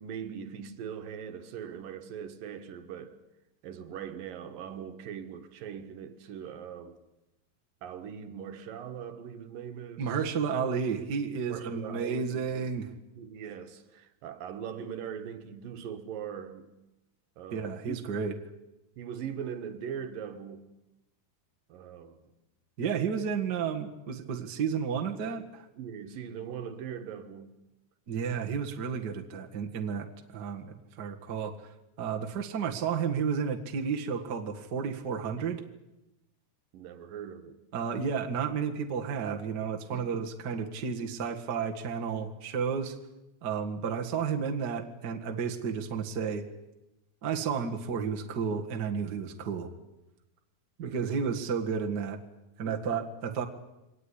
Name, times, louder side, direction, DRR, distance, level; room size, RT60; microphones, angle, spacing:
voice 1, 0.0-3.2 3.6-7.0 7.8-10.1 11.5-12.6 13.2-16.7 17.4-18.0 19.0-20.7 21.7-22.2 25.8-27.5 36.7-37.6 39.9-40.2 50.8-51.4 52.6-53.0, right 8 dB, 75° right, 3.1 m, -41 dB
voice 2, 10.0-12.9 17.5-18.4 22.8-25.6 28.1-31.5 32.0-35.6 37.7-42.9 43.4-46.4 47.2-49.7 50.8-52.2 52.6-53.4, right 6 dB, 40° right, 1.8 m, -32 dB
23.0 x 19.0 x 10.0 m
omnidirectional pair, 4.1 m